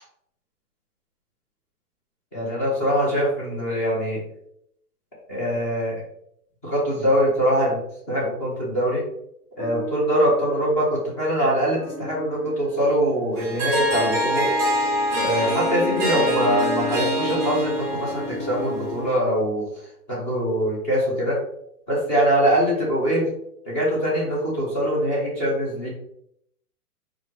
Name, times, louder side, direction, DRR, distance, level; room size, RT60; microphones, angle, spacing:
voice 1, 2.3-4.2 5.3-6.0 6.6-7.8 8.1-9.0 9.6-14.5 15.2-19.7 20.1-21.4 21.9-23.3 23.7-25.9, equal, 10° left, -5 dB, 0.4 m, -23 dB
sound 1, 9.6-18.3, right 3 dB, 45° left, 1.3 m, -41 dB
Harp, 13.4-19.1, equal, 5° right, 0.9 m, -24 dB
4.6 x 2.4 x 3.1 m, 0.73 s
hypercardioid pair, 145°, 46 cm